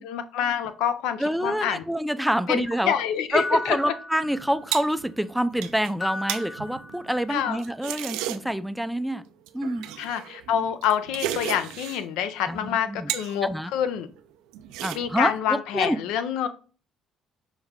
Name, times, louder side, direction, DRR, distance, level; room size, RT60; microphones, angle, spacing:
voice 1, 0.0-1.8 2.5-3.8 7.3-7.6 10.0-14.1 14.9-16.5, left 9 dB, 85° left, 11 dB, 0.4 m, -27 dB
voice 2, 1.2-3.0 3.3-9.2 9.5-9.8 12.5-13.1 13.4-13.7 14.8-16.0, equal, ahead, 12 dB, 0.3 m, -27 dB
sound 1, 3.4-4.8 6.0-7.5, left 2 dB, 40° left, 1.3 m, -36 dB
sound 2, 4.2-8.7 9.5-12.1 12.5-13.4 13.7-14.2 14.5-15.4, right 12 dB, 90° right, 0.3 m, -35 dB
5.5 x 2.3 x 3.5 m, 0.38 s
cardioid pair, 95°, 0 cm